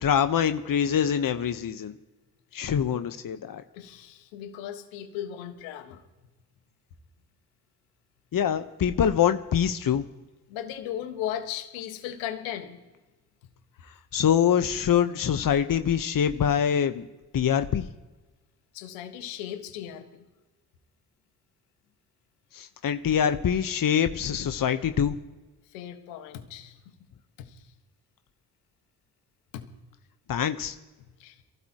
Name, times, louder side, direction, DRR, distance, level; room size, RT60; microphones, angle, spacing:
voice 1, 0.0-2.0 2.5-3.6 8.3-10.0 14.1-17.1 17.3-17.9 22.5-25.2 30.3-30.7, left 8 dB, 45° left, 9 dB, 1.1 m, -24 dB
voice 2, 3.7-6.0 10.5-12.8 18.7-20.3 25.7-26.8 27.4-27.6 29.5-29.6 31.2-31.4, left 10 dB, 80° left, 6 dB, 1.7 m, -37 dB
27.5 x 15.5 x 3.0 m, 1.2 s
hypercardioid pair, 40°, 45 cm